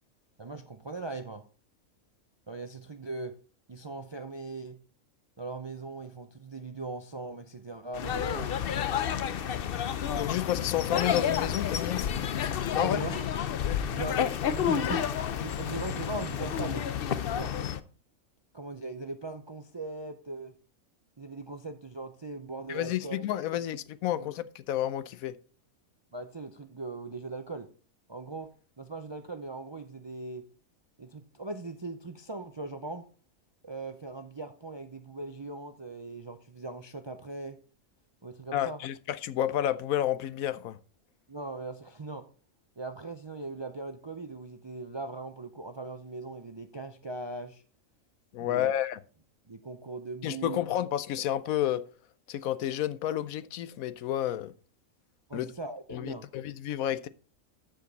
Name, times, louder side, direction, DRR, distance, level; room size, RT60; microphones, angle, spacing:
voice 1, 0.4-1.5 2.5-3.4 3.7-4.8 5.4-8.6 12.7-13.2 13.9-14.2 14.5-16.8 17.3-17.5 18.5-20.5 21.2-23.3 24.1-24.2 26.1-27.7 28.1-30.4 31.0-33.1 33.6-37.6 38.2-38.8 41.3-42.2 42.8-47.6 48.4-48.7 49.5-50.6 55.3-56.2, right 3 dB, 45° right, 0.3 m, -40 dB
sound 1, 7.9-17.8, left 8 dB, 55° left, 0.6 m, -30 dB
voice 2, 10.1-12.1 12.7-13.0 13.6-13.8 22.7-25.4 38.5-40.8 48.3-49.0 50.2-51.8 52.3-54.5 55.3-55.5 55.9-57.1, left 12 dB, 85° left, 1.1 m, -30 dB
13.5 x 5.1 x 4.0 m
omnidirectional pair, 1.4 m